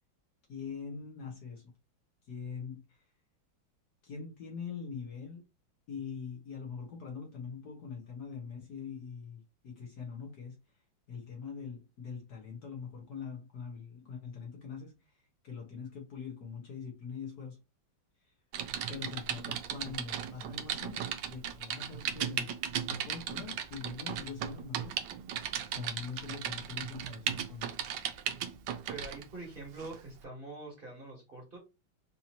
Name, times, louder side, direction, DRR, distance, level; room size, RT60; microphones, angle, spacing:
voice 1, 0.5-1.7 2.2-3.1 4.0-5.4 5.9-10.8 11.1-17.6 18.2-18.3 18.9-21.0 21.3-22.5 22.8-25.0 25.7-27.8, left 6 dB, 60° left, 1.2 m, -43 dB
Typing, 18.5-29.2 29.8-30.0, right 9 dB, 75° right, 1.1 m, -37 dB
voice 2, 28.9-31.6, right 3 dB, 30° right, 1.2 m, -44 dB
4.2 x 2.7 x 2.8 m
omnidirectional pair, 2.2 m